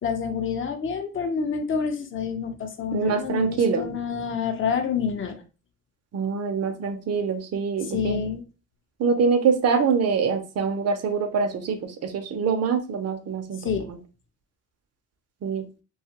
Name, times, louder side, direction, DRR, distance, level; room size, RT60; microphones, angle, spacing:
voice 1, 0.0-5.4 7.8-8.4 13.6-13.9, left 6 dB, 40° left, 5 dB, 0.7 m, -28 dB
voice 2, 2.9-3.9 6.1-8.2 9.0-13.7 15.4-15.7, right 5 dB, 55° right, 5 dB, 0.7 m, -24 dB
2.8 x 2.4 x 2.8 m, 0.32 s
cardioid pair, 90°, 30 cm